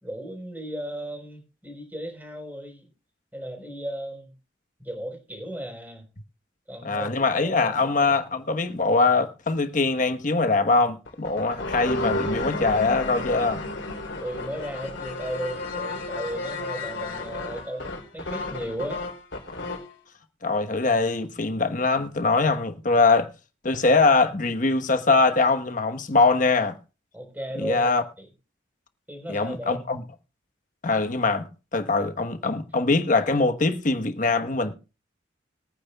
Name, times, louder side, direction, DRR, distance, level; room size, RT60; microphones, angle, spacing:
voice 1, 0.0-2.9 3.3-4.3 4.8-6.1 6.7-7.9 14.2-19.0 27.1-27.9 28.2-28.3 29.1-29.9, equal, 10° right, 4.2 m, -35 dB
voice 2, 6.8-13.6 20.4-23.3 23.6-26.8 27.6-28.0 29.3-30.0 30.8-34.7, left 3 dB, 45° left, 1.1 m, -22 dB
sound 1, 11.1-19.9, left 2 dB, 90° left, 3.2 m, -32 dB
22.0 x 9.5 x 2.3 m
head